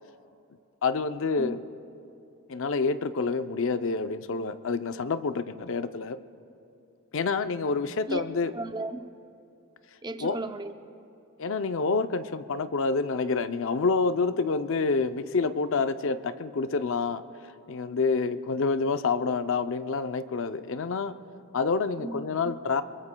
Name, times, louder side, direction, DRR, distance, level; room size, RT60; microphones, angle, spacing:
voice 1, 0.8-1.6 2.5-6.2 7.1-8.5 10.2-10.4 11.4-17.2 17.7-21.1 21.5-22.8, left 4 dB, 60° left, 11 dB, 0.5 m, -28 dB
voice 2, 8.5-9.1 10.0-10.9 22.0-22.5, right 2 dB, 20° right, 8 dB, 0.5 m, -36 dB
26.0 x 22.5 x 2.3 m, 2.6 s
head